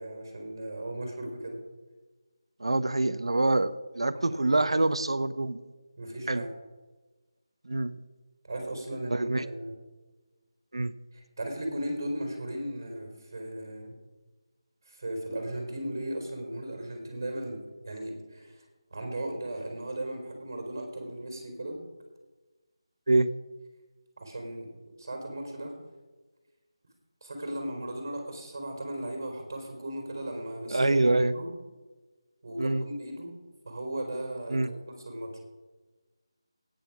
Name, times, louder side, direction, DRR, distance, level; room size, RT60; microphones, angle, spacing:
voice 1, 0.0-1.6 4.5-4.7 6.0-6.5 8.4-9.7 11.1-14.0 14.9-17.6 17.9-21.8 24.2-24.7 25.0-25.7 27.2-30.9 31.3-31.5 32.4-33.3 33.7-35.4, right 1 dB, 35° right, 3 dB, 3.9 m, -36 dB
voice 2, 2.6-5.6 6.3-6.5 7.6-7.9 9.1-9.4 10.7-10.9 23.1-23.3 30.7-31.3 32.6-32.8 34.5-34.7, right 2 dB, 75° right, 13 dB, 0.9 m, -25 dB
14.5 x 9.7 x 6.0 m, 1.2 s
figure-of-eight pair, 175°, 3 cm